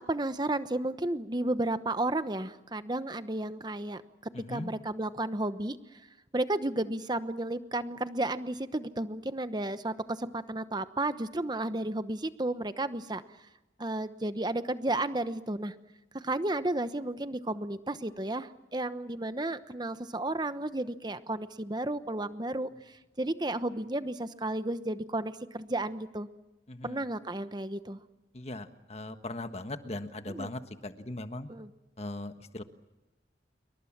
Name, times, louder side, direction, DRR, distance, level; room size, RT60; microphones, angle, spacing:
voice 1, 0.0-4.0 4.5-5.8 6.3-13.2 13.8-15.7 16.1-26.3 26.8-28.0 30.3-30.5 31.5-31.7, right 2 dB, 25° right, 11 dB, 1.0 m, -33 dB
voice 2, 4.3-4.7 26.7-27.0 28.3-31.5 32.0-32.6, left 2 dB, 35° left, 9 dB, 1.4 m, -39 dB
27.0 x 24.0 x 7.4 m, 1.0 s
head